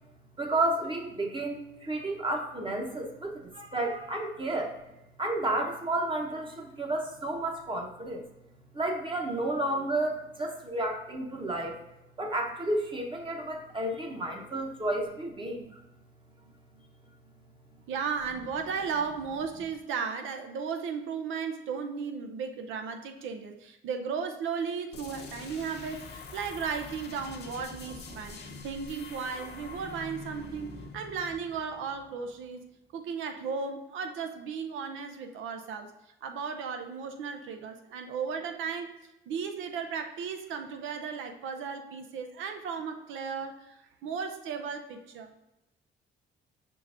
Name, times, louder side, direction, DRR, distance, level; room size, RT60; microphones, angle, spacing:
voice 1, 0.4-4.8 5.2-8.2 8.7-11.8 12.2-15.8, right 2 dB, 25° right, 1 dB, 0.8 m, -31 dB
voice 2, 17.9-28.4 28.6-35.9 36.2-38.9 39.3-45.3, right 6 dB, 85° right, 6 dB, 0.5 m, -35 dB
sound 1, 24.9-32.5, left 3 dB, 55° left, 0.8 m, -45 dB
5.2 x 3.8 x 2.5 m, 0.95 s
cardioid pair, 90°, 20 cm